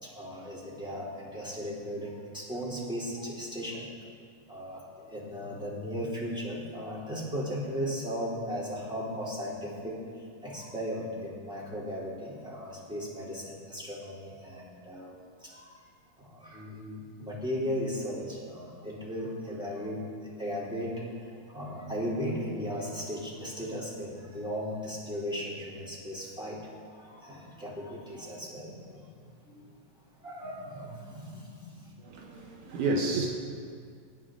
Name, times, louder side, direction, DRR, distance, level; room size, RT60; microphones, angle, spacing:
voice 1, 0.0-3.9 4.5-10.0 10.4-15.8 16.2-26.6 26.9-29.6 30.2-31.9, equal, ahead, -6 dB, 2.6 m, -37 dB
voice 2, 32.0-33.3, right 2 dB, 75° right, 0 dB, 2.5 m, -30 dB
22.5 x 9.3 x 3.8 m, 2.2 s
omnidirectional pair, 3.8 m